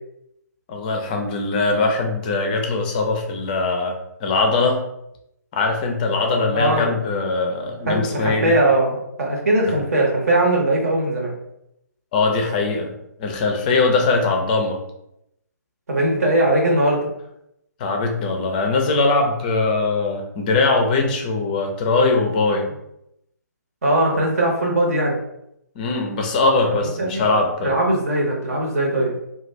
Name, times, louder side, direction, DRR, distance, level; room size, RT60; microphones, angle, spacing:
voice 1, 0.7-4.8 5.5-8.5 12.1-14.8 17.8-22.7 25.8-27.8, left 3 dB, 25° left, 3 dB, 0.5 m, -21 dB
voice 2, 6.5-6.9 7.9-11.3 15.9-17.1 23.8-25.2 27.0-27.3 27.6-29.1, right 1 dB, 55° right, -1 dB, 1.0 m, -20 dB
2.4 x 2.3 x 3.1 m, 0.80 s
figure-of-eight pair, 135°, 10 cm